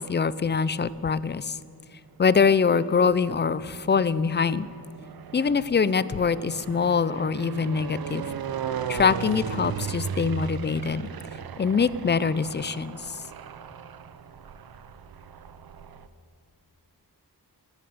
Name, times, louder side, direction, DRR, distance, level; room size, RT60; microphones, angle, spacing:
voice 1, 0.0-1.6 2.2-4.7 5.3-8.3 8.9-11.1 11.6-13.2, left 5 dB, 30° left, 17 dB, 0.4 m, -24 dB
sound 1, 0.6-1.3 2.1-16.1, right 7 dB, 60° right, 0.7 m, -37 dB
13.5 x 13.0 x 6.8 m, 2.4 s
wide cardioid pair, 130°, 40 cm